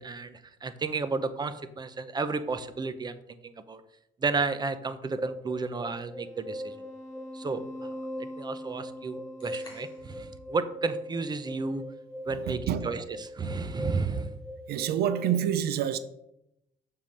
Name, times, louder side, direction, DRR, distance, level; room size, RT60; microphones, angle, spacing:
voice 1, 0.0-3.8 4.2-6.7 7.3-7.6 8.2-11.8 12.3-13.0 13.3-14.4, right 4 dB, 25° right, 0.7 m, -32 dB
sound 1, 5.2-15.3, equal, ahead, 2.6 m, -40 dB
sound 2, 9.4-10.2, left 1 dB, 25° left, 3.1 m, -50 dB
voice 2, 12.3-12.9 14.7-16.0, right 10 dB, 70° right, 0.6 m, -28 dB
7.0 x 3.8 x 6.4 m
cardioid pair, 110°, 17 cm